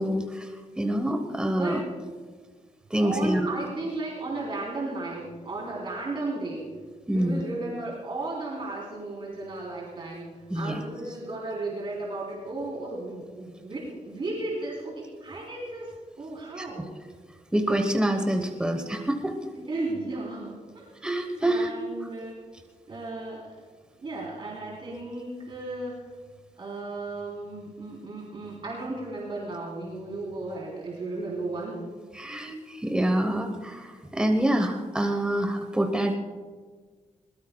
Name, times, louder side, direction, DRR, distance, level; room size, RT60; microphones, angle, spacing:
voice 1, 0.0-1.8 2.9-3.5 7.1-7.4 10.5-10.8 16.6-16.7 17.5-19.4 21.0-21.7 32.1-36.1, right 1 dB, 5° right, 4 dB, 1.1 m, -26 dB
voice 2, 1.5-1.8 3.0-6.7 7.1-16.8 19.5-20.9 21.4-22.4 22.9-23.4 24.0-25.9 26.6-31.8, right 2 dB, 40° right, -4 dB, 3.7 m, -34 dB
21.5 x 21.0 x 2.3 m, 1.5 s
wide cardioid pair, 135°, 13 cm